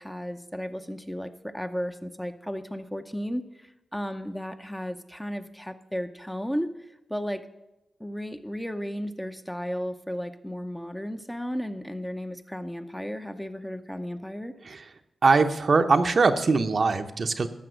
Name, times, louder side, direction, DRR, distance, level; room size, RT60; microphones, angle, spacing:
voice 1, 0.0-6.7 7.1-7.5 8.0-14.5, equal, 5° left, 8 dB, 0.6 m, -34 dB
voice 2, 15.2-17.5, right 4 dB, 50° right, 8 dB, 0.7 m, -22 dB
14.0 x 6.0 x 7.9 m, 0.96 s
wide cardioid pair, 100°, 0 cm